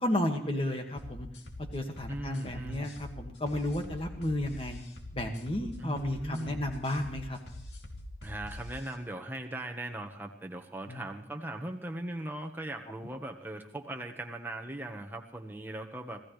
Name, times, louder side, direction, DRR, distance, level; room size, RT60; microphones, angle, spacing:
voice 1, 0.0-1.3 1.7-4.8 5.1-7.4 10.9-11.0, left 1 dB, 30° left, 4 dB, 2.0 m, -32 dB
sound 1, 1.0-9.0, left 1 dB, 85° left, 2.4 m, -44 dB
voice 2, 2.1-2.9 5.8-6.6 8.2-16.2, right 1 dB, 10° right, 3 dB, 1.4 m, -39 dB
26.5 x 15.5 x 3.3 m, 0.64 s
head